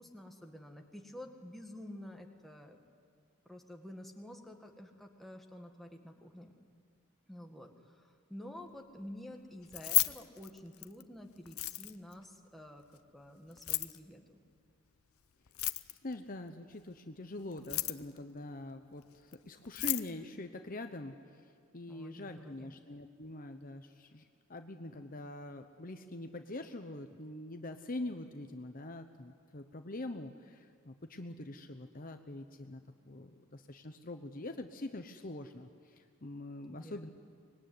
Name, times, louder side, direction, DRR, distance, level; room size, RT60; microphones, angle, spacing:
voice 1, 0.0-2.8 3.4-6.5 7.3-14.4 21.9-22.8 36.7-37.1, left 1 dB, ahead, 1 dB, 1.8 m, -50 dB
Keys jangling, 9.6-11.0 11.5-12.1 13.5-14.0 15.5-16.1 17.5-18.2 19.3-19.4 19.6-20.1, left 18 dB, 80° left, 0.7 m, -33 dB
voice 2, 16.0-24.2 24.5-37.1, left 2 dB, 40° left, 7 dB, 0.9 m, -44 dB
24.5 x 21.0 x 9.6 m, 2.2 s
head